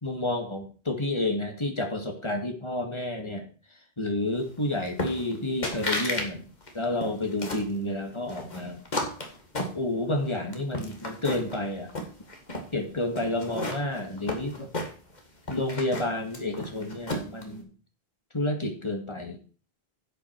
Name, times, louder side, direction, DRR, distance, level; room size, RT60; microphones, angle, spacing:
voice 1, 0.0-3.5 4.0-6.5 6.7-8.8 9.7-11.9 12.7-14.7 15.5-17.7 18.3-19.4, left 1 dB, 30° left, 4 dB, 1.9 m, -30 dB
sound 1, 5.0-5.4 5.6-6.3 6.6-7.7 8.3-10.2 10.5-11.6 11.9-12.7 13.2-15.2 15.5-17.4, left 1 dB, 45° left, 2.0 m, -33 dB
11.0 x 8.1 x 4.6 m, 0.39 s
omnidirectional pair, 1.0 m